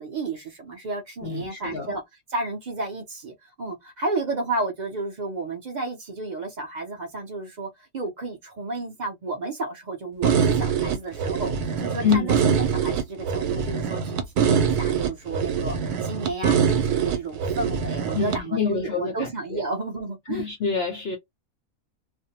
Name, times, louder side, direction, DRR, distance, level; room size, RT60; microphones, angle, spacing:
voice 1, 0.0-2.0 2.3-20.5, right 3 dB, 55° right, 0.5 m, -32 dB
voice 2, 1.2-1.9 12.0-12.3 18.1-19.6 20.3-21.2, left 6 dB, 70° left, 0.6 m, -27 dB
sound 1, 10.2-18.4, right 7 dB, 80° right, 1.1 m, -24 dB
2.5 x 2.1 x 2.7 m
omnidirectional pair, 1.6 m